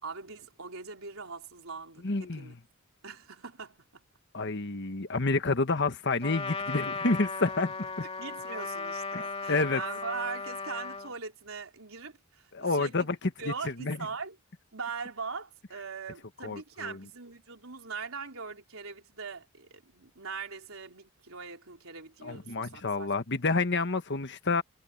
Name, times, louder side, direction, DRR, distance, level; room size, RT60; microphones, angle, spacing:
voice 1, 0.0-2.5 3.0-4.0 8.2-13.1 13.4-14.4 14.7-23.1, right 5 dB, 75° right, 4.2 m, -41 dB
voice 2, 2.0-2.6 4.3-8.1 9.1-9.2 9.5-9.8 12.5-13.2 13.4-14.0 16.4-17.0 22.2-24.6, left 3 dB, 55° left, 1.5 m, -29 dB
Trumpet, 6.2-11.1, left 4 dB, 30° left, 2.5 m, -36 dB
head